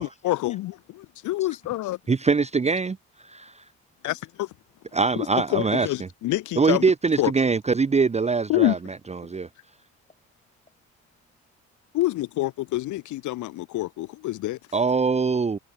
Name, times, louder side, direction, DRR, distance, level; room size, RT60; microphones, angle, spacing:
voice 1, 0.0-2.0 4.0-4.2 5.2-6.9 7.2-7.3 8.5-8.8 11.9-14.6, left 16 dB, 80° left, 0.7 m, -27 dB
voice 2, 1.1-1.8 3.3-3.8 9.3-9.4 9.9-11.5 11.8-12.0, left 3 dB, 20° left, 7.1 m, -57 dB
voice 3, 2.1-3.0 3.3-3.4 5.0-5.9 6.6-8.8 9.2-9.5 14.7-15.6, right 4 dB, 20° right, 0.8 m, -22 dB
cardioid pair, 90°, 30 cm